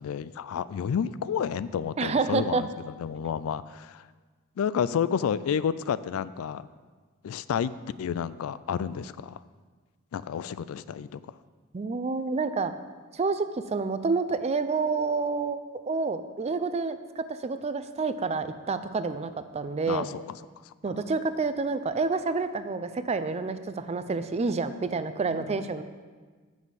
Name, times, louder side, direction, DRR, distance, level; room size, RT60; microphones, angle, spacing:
voice 1, 0.0-4.0 4.6-6.7 7.2-7.7 8.0-9.4 10.1-11.2 19.9-20.2 25.3-25.6, left 7 dB, 75° left, 17 dB, 0.3 m, -30 dB
voice 2, 2.0-2.7 11.7-12.7 13.1-15.6 15.9-20.0 20.8-25.8, right 4 dB, 30° right, 11 dB, 0.4 m, -28 dB
7.4 x 6.3 x 7.1 m, 1.4 s
head